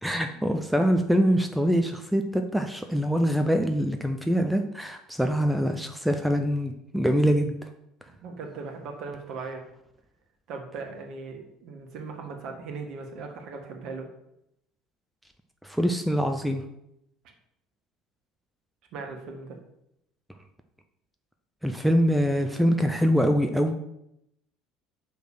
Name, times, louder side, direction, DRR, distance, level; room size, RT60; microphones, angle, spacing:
voice 1, 0.0-7.6 15.6-16.6 21.6-23.7, equal, ahead, 5 dB, 0.7 m, -24 dB
voice 2, 8.1-9.6 10.5-14.1 18.9-19.6, right 4 dB, 55° right, 3 dB, 1.6 m, -38 dB
5.9 x 5.1 x 6.6 m, 0.82 s
figure-of-eight pair, 65°, 0 cm